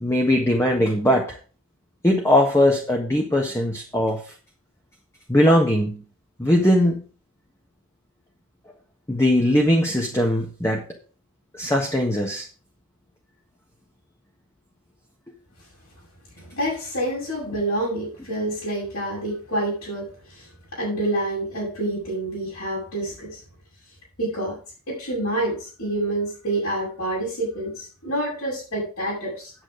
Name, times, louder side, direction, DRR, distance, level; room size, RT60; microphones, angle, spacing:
voice 1, 0.0-1.4 2.0-4.2 5.3-6.0 6.4-7.0 9.1-10.8 11.5-12.5, left 1 dB, 15° left, 1 dB, 1.5 m, -20 dB
voice 2, 16.5-20.5 20.7-23.4 24.2-24.5 24.9-29.5, right 1 dB, 70° left, -6 dB, 6.7 m, -27 dB
9.3 x 8.7 x 5.0 m, 0.37 s
head